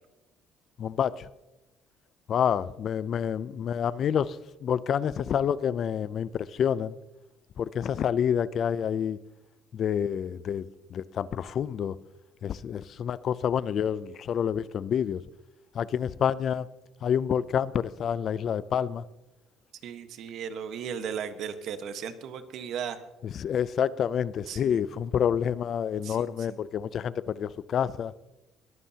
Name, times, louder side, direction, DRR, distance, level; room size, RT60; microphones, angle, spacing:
voice 1, 0.8-1.3 2.3-7.0 7.6-9.2 9.7-12.0 12.4-15.2 15.7-16.7 17.0-19.0 23.3-28.1, left 8 dB, 40° left, 0.4 m, -28 dB
voice 2, 19.8-23.0 24.5-24.8 26.0-26.6, right 7 dB, 55° right, 1.2 m, -36 dB
21.5 x 15.0 x 2.8 m
cardioid pair, 150°, 0 cm